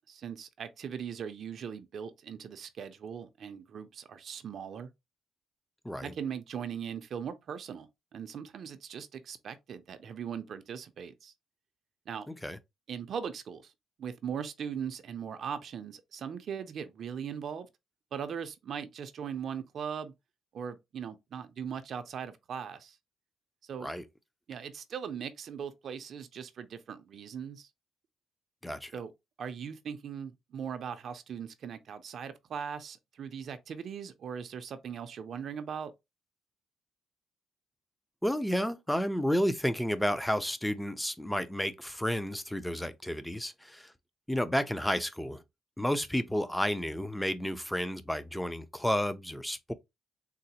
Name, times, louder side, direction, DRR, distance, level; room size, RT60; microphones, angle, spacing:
voice 1, 0.1-4.9 6.0-11.3 12.1-12.3 12.9-13.7 14.0-17.7 18.1-20.1 20.5-23.0 23.6-23.9 24.5-27.7 28.9-29.1 29.4-35.9, right 7 dB, 60° right, 0.4 m, -39 dB
voice 2, 12.3-12.6 23.8-24.0 28.6-28.9 38.2-43.9 44.3-45.4 45.8-49.7, equal, 5° left, 0.4 m, -31 dB
3.8 x 2.0 x 2.8 m
cardioid pair, 90°, 0 cm